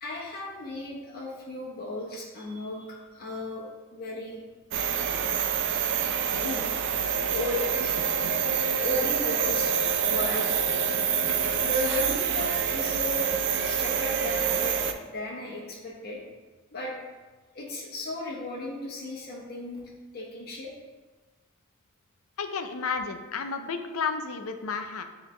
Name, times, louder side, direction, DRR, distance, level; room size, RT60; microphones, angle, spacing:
voice 1, 0.0-3.6 3.9-4.4 6.3-7.0 7.3-8.1 8.8-9.7 10.0-11.0 11.6-13.4 13.6-16.2 16.7-16.9 17.5-20.7, left 2 dB, 50° left, -5 dB, 1.2 m, -35 dB
sound 1, 4.7-14.9, right 7 dB, 60° right, 0.4 m, -27 dB
voice 2, 22.4-25.0, left 5 dB, 85° left, 7 dB, 0.6 m, -32 dB
9.2 x 3.3 x 3.3 m, 1.3 s
head